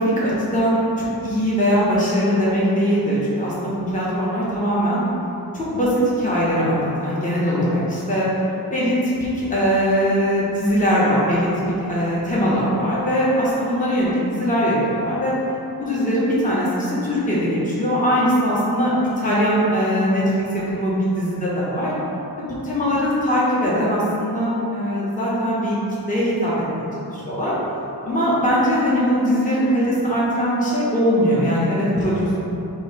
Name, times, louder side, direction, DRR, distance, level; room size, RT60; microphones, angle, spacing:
voice 1, 0.0-5.0 5.5-8.3 8.7-11.5 11.8-15.3 15.8-20.2 20.5-21.9 22.4-25.8 26.1-27.5 28.0-32.4, equal, 20° left, -7 dB, 0.8 m, -21 dB
2.9 x 2.8 x 4.4 m, 3.0 s
wide cardioid pair, 105°, 38 cm